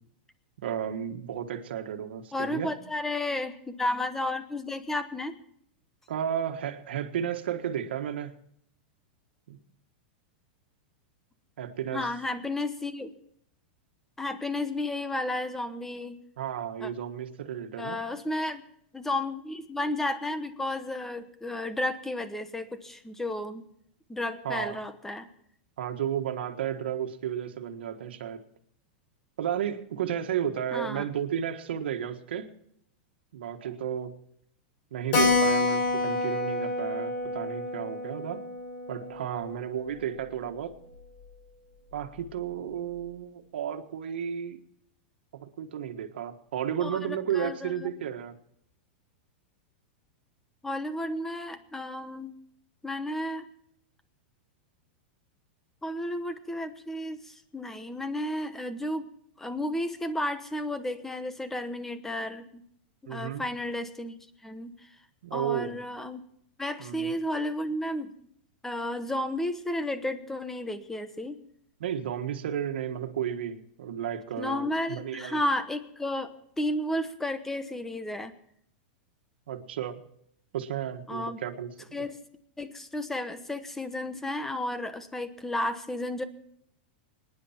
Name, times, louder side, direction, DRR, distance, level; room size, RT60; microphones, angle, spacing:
voice 1, 0.6-2.7 6.1-8.4 9.5-9.6 11.6-12.1 16.4-18.0 24.4-24.8 25.8-28.4 29.4-32.5 33.3-34.2 34.9-38.4 38.9-40.7 41.9-44.6 45.4-48.4 63.1-63.4 65.2-65.8 66.8-67.1 71.8-75.4 79.5-80.0 80.5-82.0, right 9 dB, 80° right, 6 dB, 1.5 m, -33 dB
voice 2, 2.3-5.3 11.9-13.1 14.2-16.2 16.8-16.9 17.8-18.6 18.9-23.7 24.1-25.3 30.7-31.0 46.8-47.9 50.6-52.3 52.8-53.5 55.8-59.1 59.4-62.4 63.0-64.9 65.3-66.2 66.6-68.1 68.6-71.3 74.4-78.3 81.1-81.4 81.9-82.2 82.6-86.2, left 1 dB, 5° left, 10 dB, 1.1 m, -32 dB
Keyboard (musical), 35.1-40.2 40.5-40.6 40.8-40.9 41.2-41.3 41.9-42.2, left 2 dB, 55° left, 6.3 m, -28 dB
25.0 x 10.0 x 4.4 m, 0.71 s
supercardioid pair, 145°, 6 cm